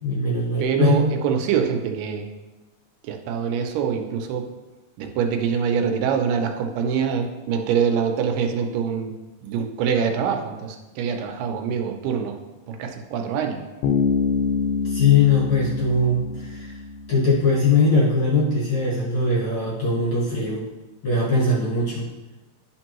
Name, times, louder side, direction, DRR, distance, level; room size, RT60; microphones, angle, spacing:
voice 1, 0.0-1.0 14.8-16.7 17.1-20.6 21.0-22.1, left 3 dB, 50° left, -5 dB, 1.8 m, -20 dB
voice 2, 0.6-2.3 3.1-4.5 5.0-9.2 9.4-12.4 12.7-13.6, right 7 dB, 85° right, 5 dB, 2.3 m, -24 dB
Bass guitar, 13.8-17.5, left 5 dB, 80° left, 2.3 m, -25 dB
11.0 x 4.5 x 3.0 m, 1.1 s
omnidirectional pair, 3.8 m